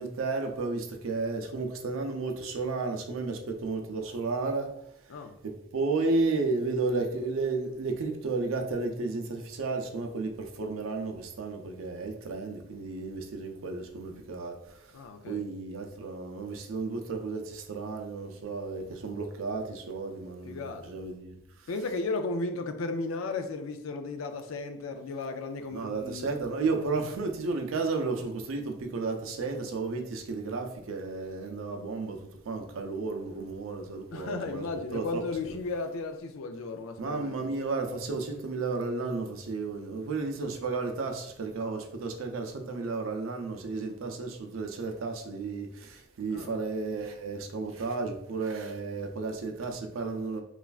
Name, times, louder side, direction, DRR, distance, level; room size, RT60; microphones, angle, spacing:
voice 1, 0.0-4.7 5.7-10.3 10.6-14.5 15.3-21.3 25.7-32.2 32.5-34.6 34.9-35.5 37.0-45.7 46.2-50.4, right 3 dB, 85° right, 0.5 m, -33 dB
voice 2, 14.9-15.5 20.5-20.9 21.7-26.3 34.1-37.5 46.3-46.6, left 3 dB, 90° left, 0.4 m, -35 dB
3.1 x 2.4 x 2.3 m
head